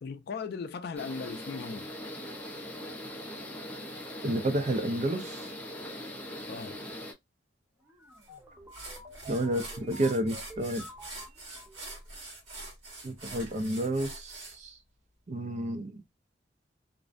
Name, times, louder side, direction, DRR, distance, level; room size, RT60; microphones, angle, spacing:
voice 1, 0.0-1.9 6.5-6.8, left 5 dB, 55° left, 0.4 m, -38 dB
sound 1, 1.0-7.1, left 1 dB, 10° left, 0.5 m, -41 dB
voice 2, 4.2-5.4 9.3-10.8 13.0-14.7 15.3-16.0, right 1 dB, 40° right, 0.5 m, -30 dB
sound 2, 7.8-12.0, equal, 15° right, 0.8 m, -49 dB
sound 3, 8.2-8.3 8.7-14.6, right 2 dB, 65° right, 1.4 m, -44 dB
2.5 x 2.1 x 2.4 m
head